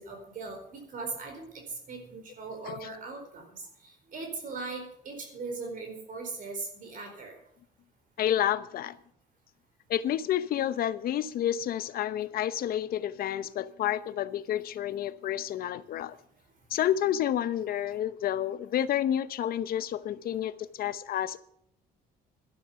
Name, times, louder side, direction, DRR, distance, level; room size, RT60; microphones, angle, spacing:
voice 1, 0.0-7.4, right 3 dB, 55° right, 3 dB, 4.6 m, -39 dB
voice 2, 8.2-9.0 9.9-16.2 16.7-21.4, left 11 dB, 60° left, 14 dB, 0.9 m, -30 dB
12.5 x 11.0 x 6.9 m, 0.68 s
cardioid pair, 110°, 17 cm